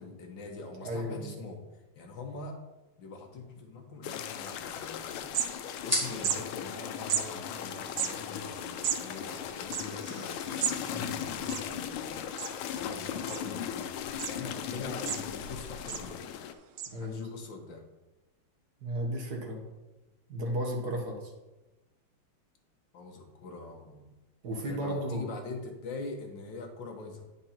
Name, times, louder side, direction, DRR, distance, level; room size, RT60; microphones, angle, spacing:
voice 1, 0.0-2.6 3.0-5.3 5.8-12.2 12.7-13.9 14.3-16.2 17.0-17.8 22.9-24.1 24.5-27.2, left 3 dB, 60° left, 2 dB, 1.9 m, -43 dB
voice 2, 0.8-1.3 10.9-11.1 16.9-17.2 18.8-19.6 20.3-21.3 24.4-25.2, equal, 50° right, 1 dB, 1.8 m, -34 dB
sound 1, 4.0-16.5, left 9 dB, 85° left, 1.5 m, -38 dB
sound 2, 4.4-12.1, equal, 5° right, 3.1 m, -42 dB
sound 3, 4.8-4.9 5.1-5.9 6.2-6.4 7.1-7.3 7.9-10.8 11.1-11.2 11.4-12.0 12.4-12.8 13.3-13.8 14.2-14.3 14.8-15.5 15.9-16.1 16.8-16.9, right 9 dB, 80° right, 1.6 m, -33 dB
9.7 x 5.3 x 4.4 m, 1.1 s
omnidirectional pair, 2.4 m